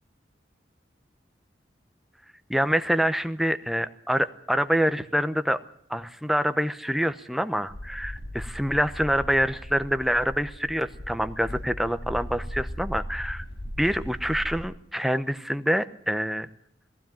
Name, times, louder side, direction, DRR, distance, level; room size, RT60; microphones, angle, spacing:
voice 1, 2.5-5.6 5.9-13.4 13.8-16.5, equal, ahead, 11 dB, 0.8 m, -26 dB
sound 1, 7.7-14.6, equal, 75° left, 5.5 m, -38 dB
19.0 x 15.5 x 9.1 m, 0.67 s
head